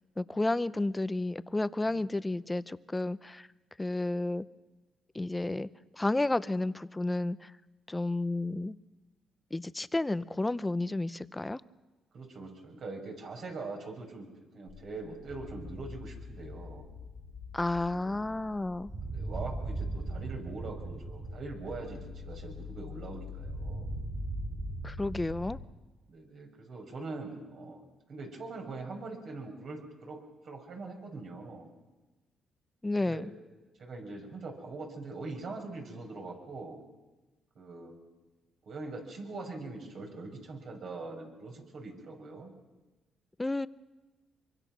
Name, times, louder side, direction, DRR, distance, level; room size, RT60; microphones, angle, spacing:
voice 1, 0.2-3.5 3.8-4.4 5.1-5.7 6.0-7.5 7.9-8.8 9.5-11.6 17.5-18.9 24.8-25.6 32.8-33.2 43.4-43.7, left 2 dB, 15° left, 15 dB, 0.7 m, -31 dB
voice 2, 12.1-14.3 14.5-16.8 17.9-18.2 19.1-23.9 26.1-31.7 33.0-33.3 33.8-36.8 37.5-37.9 38.7-42.5, right 3 dB, 60° right, 2 dB, 6.1 m, -42 dB
sound 1, 14.7-25.7, left 11 dB, 60° left, 0.7 m, -47 dB
sound 2, 15.3-25.6, right 3 dB, 45° right, 6.8 m, -40 dB
25.0 x 23.5 x 6.2 m, 1.1 s
cardioid pair, 90°, 0 cm